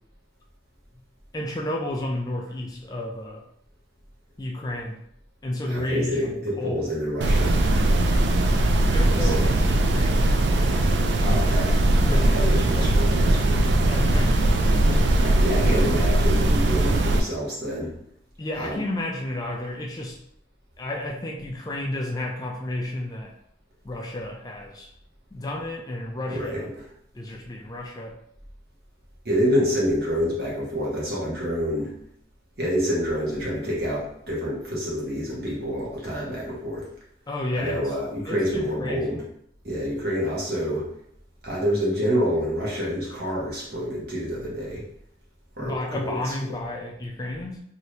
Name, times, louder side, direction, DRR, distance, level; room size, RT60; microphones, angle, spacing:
voice 1, 1.3-3.4 4.4-5.0 5.4-6.9 8.9-10.4 12.1-12.3 13.9-15.0 18.4-20.2 20.8-23.3 23.8-24.9 25.3-26.7 27.1-28.2 37.3-37.9 38.3-39.2 45.6-47.6, left 1 dB, 20° left, 0 dB, 0.3 m, -32 dB
voice 2, 5.7-7.6 9.0-9.5 11.2-11.8 12.0-13.7 14.8-17.9 18.6-18.8 26.3-26.6 29.2-31.9 32.6-36.9 37.6-39.2 39.6-40.9 41.4-44.8 45.6-46.3, equal, 55° right, -5 dB, 1.1 m, -27 dB
sound 1, 7.2-17.2, right 1 dB, 70° right, 0.4 m, -20 dB
2.8 x 2.7 x 3.1 m, 0.71 s
head